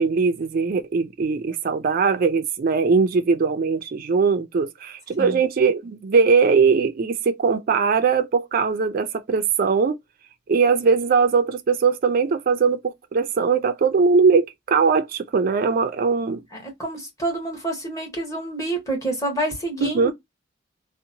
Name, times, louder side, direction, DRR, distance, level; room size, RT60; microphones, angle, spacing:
voice 1, 0.0-10.0 10.5-16.4 19.8-20.1, right 5 dB, 50° right, 0.4 m, -20 dB
voice 2, 16.5-20.1, right 2 dB, 15° left, 1.2 m, -28 dB
2.7 x 2.1 x 2.6 m
head